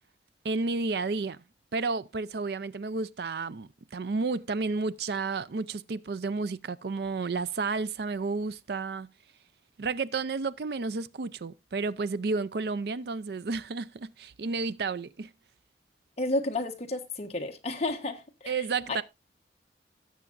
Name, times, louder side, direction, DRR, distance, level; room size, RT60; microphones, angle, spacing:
voice 1, 0.4-1.4 1.7-9.1 9.8-15.3 18.5-19.0, right 4 dB, 60° right, 0.5 m, -31 dB
voice 2, 16.2-19.0, left 2 dB, 35° left, 1.3 m, -32 dB
17.5 x 7.4 x 2.5 m
head